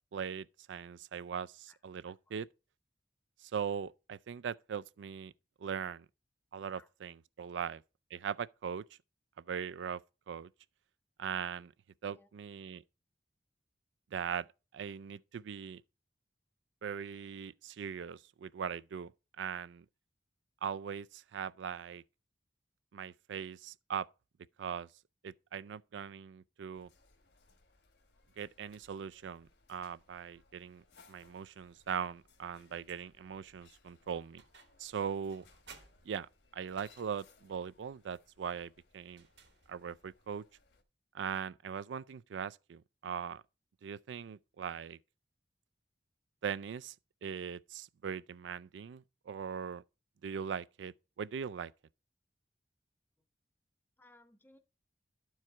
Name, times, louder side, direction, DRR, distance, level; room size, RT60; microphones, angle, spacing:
voice 1, 0.1-2.5 3.4-5.3 5.6-6.1 6.5-7.8 8.1-8.8 9.4-10.0 10.3-10.5 11.2-11.7 12.0-12.8 14.1-14.5 14.7-15.8 16.8-19.1 19.4-19.9 20.6-22.0 22.9-24.1 24.6-24.9 25.2-26.9 28.4-30.8 31.1-34.4 34.8-35.4 36.0-39.3 39.7-40.4 41.1-43.4 43.8-45.0 46.4-46.9 47.2-49.8 50.2-51.7, right 7 dB, 90° right, 0.4 m, -40 dB
voice 2, 1.7-2.3 6.7-6.9 12.1-12.3 54.0-54.6, left 2 dB, 10° left, 0.6 m, -63 dB
sound 1, 26.7-40.8, left 4 dB, 70° left, 1.2 m, -67 dB
sound 2, 34.4-34.9 35.3-37.4 39.1-40.0, right 5 dB, 70° right, 1.7 m, -58 dB
12.0 x 4.7 x 4.3 m
head